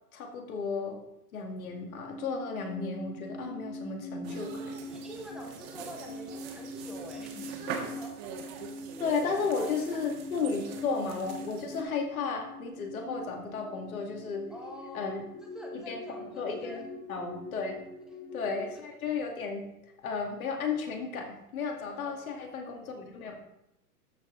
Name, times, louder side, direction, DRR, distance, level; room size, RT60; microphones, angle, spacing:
voice 1, 0.1-1.0 1.3-4.7 9.0-14.5 14.9-15.2 15.9-16.0 16.4-16.8 17.1-17.9 18.3-19.6 20.0-23.4, left 5 dB, 65° left, 2 dB, 2.3 m, -34 dB
sound 1, 1.6-18.7, left 1 dB, 35° left, 1.8 m, -43 dB
sound 2, 4.2-11.8, right 6 dB, 40° right, 1.6 m, -43 dB
voice 2, 4.9-8.4 9.4-10.0 14.5-16.8 18.1-18.2 21.9-22.4, left 1 dB, ahead, 1 dB, 0.4 m, -47 dB
13.0 x 5.1 x 3.9 m, 0.84 s
hypercardioid pair, 120°, 46 cm